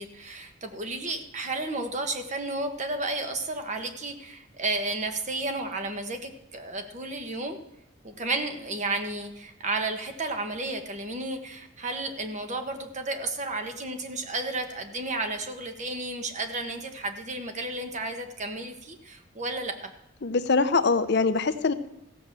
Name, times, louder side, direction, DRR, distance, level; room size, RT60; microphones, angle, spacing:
voice 1, 0.0-7.6 8.0-19.9, right 2 dB, 35° right, 6 dB, 1.4 m, -32 dB
voice 2, 20.2-21.7, left 4 dB, 60° left, 11 dB, 0.7 m, -23 dB
15.0 x 7.5 x 6.8 m, 0.86 s
head